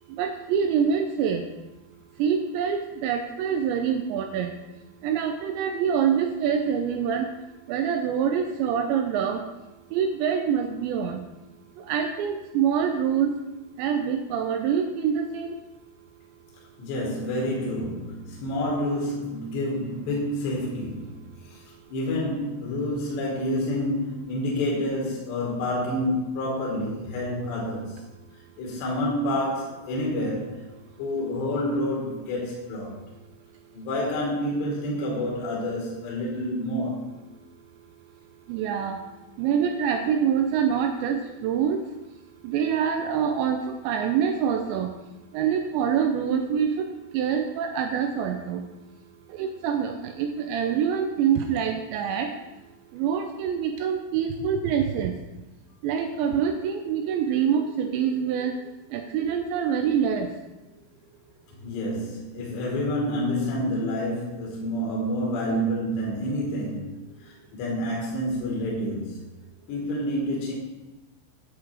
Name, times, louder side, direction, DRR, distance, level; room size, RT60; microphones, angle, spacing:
voice 1, 0.1-1.4 2.2-4.5 5.0-7.3 7.7-9.4 9.9-11.2 11.8-13.3 13.8-15.6 38.5-39.0 39.4-41.8 42.4-44.9 45.3-46.9 47.1-48.6 49.3-52.3 52.9-55.1 55.8-58.5 58.9-60.3, right 7 dB, 80° right, 5 dB, 2.6 m, -25 dB
voice 2, 16.8-21.6 21.9-28.0 28.6-30.7 31.0-33.0 33.7-37.1 61.6-66.9 67.2-69.2 69.7-70.5, left 1 dB, 65° left, -4 dB, 3.8 m, -28 dB
10.5 x 8.1 x 4.8 m, 1.0 s
omnidirectional pair, 5.8 m